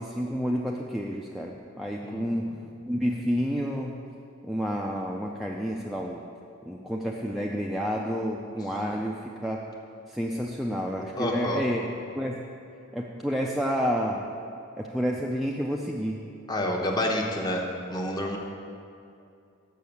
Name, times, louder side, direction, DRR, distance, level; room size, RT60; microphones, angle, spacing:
voice 1, 0.0-2.5 2.9-4.0 4.4-6.2 6.7-9.7 10.1-11.9 12.2-12.4 12.9-14.3 14.8-16.2, equal, ahead, -1 dB, 0.3 m, -29 dB
voice 2, 11.2-11.6 16.5-17.6 17.9-18.4, left 1 dB, 20° left, 0 dB, 0.9 m, -28 dB
6.5 x 6.2 x 6.9 m, 2.6 s
head